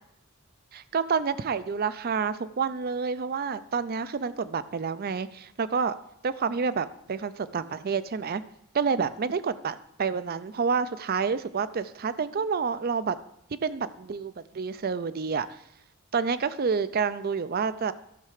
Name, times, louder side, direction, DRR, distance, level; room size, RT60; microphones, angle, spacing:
voice 1, 0.7-5.9 6.2-8.4 8.7-13.2 13.5-15.6 16.1-17.9, right 5 dB, 45° right, 14 dB, 0.5 m, -29 dB
13.0 x 6.7 x 4.9 m, 0.78 s
head